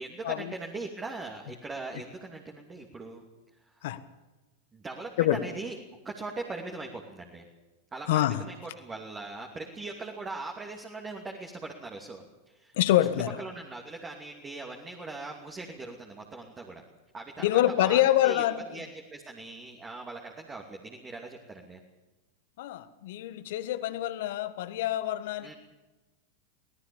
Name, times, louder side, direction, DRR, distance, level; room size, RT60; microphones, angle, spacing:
voice 1, 0.0-3.2 3.6-3.9 4.7-5.8 6.0-7.5 7.9-8.1 8.5-12.7 13.4-16.8 17.1-18.4 18.7-21.8 25.4-25.5, right 3 dB, 20° right, 1 dB, 2.8 m, -40 dB
voice 2, 8.1-8.4 12.8-13.4 17.4-18.8 22.6-25.5, left 13 dB, 60° left, 13 dB, 1.4 m, -26 dB
23.5 x 17.5 x 7.1 m, 1.1 s
figure-of-eight pair, 90°, 0 cm